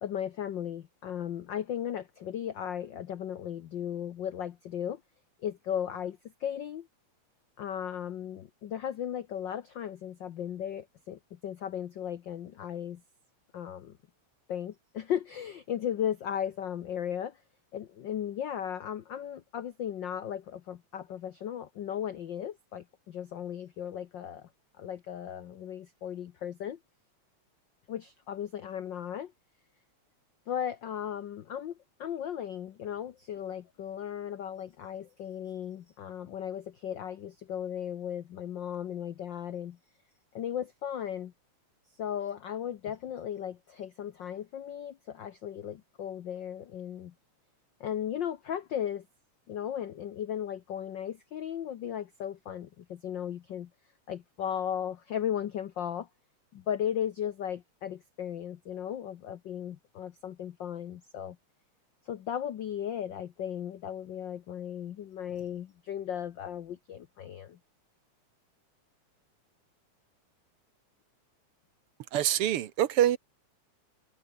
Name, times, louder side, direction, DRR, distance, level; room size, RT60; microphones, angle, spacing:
voice 1, 0.0-5.0 5.4-6.9 7.6-13.0 13.5-14.0 14.5-17.4 17.7-24.5 24.8-26.8 27.9-29.3 30.5-39.8 40.3-41.3 42.0-47.1 47.8-49.1 49.5-53.7 54.1-56.1 56.5-61.4 62.0-67.6, left 9 dB, 85° left, 1.0 m, -36 dB
voice 2, 72.1-73.2, right 11 dB, 65° right, 1.6 m, -25 dB
omnidirectional pair, 3.3 m